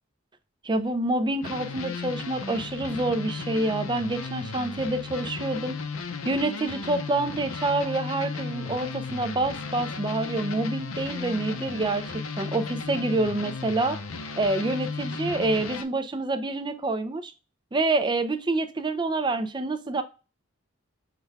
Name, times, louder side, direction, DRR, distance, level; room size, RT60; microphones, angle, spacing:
voice 1, 0.6-5.7 6.2-12.0 12.4-14.0 14.3-17.3 17.7-20.0, right 2 dB, 20° right, 8 dB, 0.5 m, -27 dB
sound 1, 1.4-15.8, left 4 dB, 80° left, 0.6 m, -35 dB
5.8 x 2.3 x 3.3 m, 0.31 s
head